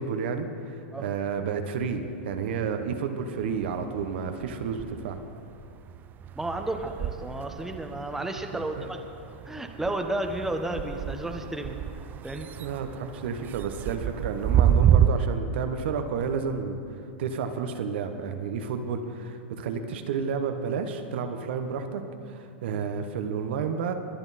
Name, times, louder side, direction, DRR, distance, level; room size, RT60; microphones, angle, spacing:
voice 1, 0.0-5.2 8.8-8.9 12.6-23.9, right 6 dB, 70° right, 6 dB, 1.1 m, -31 dB
sound 1, 1.8-3.0 3.4-15.1, right 10 dB, 30° right, 0.5 m, -29 dB
voice 2, 6.4-9.0 9.5-11.8 12.2-12.5, right 1 dB, 5° right, 4 dB, 1.1 m, -32 dB
23.0 x 8.9 x 4.2 m, 2.6 s
hypercardioid pair, 110°, 6 cm